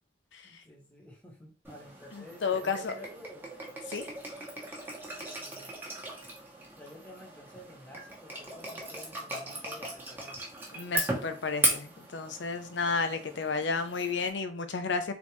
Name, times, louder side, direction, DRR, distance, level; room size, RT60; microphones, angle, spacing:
voice 1, 0.4-3.5 5.2-5.7 6.7-10.5, left 1 dB, 10° left, 0 dB, 1.1 m, -51 dB
sound 1, 1.6-14.3, right 1 dB, 10° right, 1.1 m, -37 dB
voice 2, 2.1-2.9 3.9-4.1 10.7-15.1, left 4 dB, 75° left, 8 dB, 0.6 m, -32 dB
3.8 x 3.5 x 3.1 m, 0.37 s
head